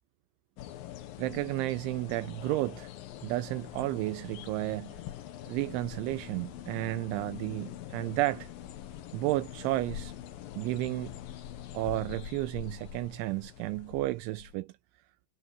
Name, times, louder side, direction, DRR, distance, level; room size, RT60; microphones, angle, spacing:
sound 1, 0.6-14.6, left 11 dB, 65° left, 2.4 m, -44 dB
voice 1, 1.2-2.9 3.2-5.0 5.5-8.5 9.1-10.1 10.6-11.2 11.7-14.7, right 18 dB, 80° right, 2.8 m, -32 dB
omnidirectional pair, 5.7 m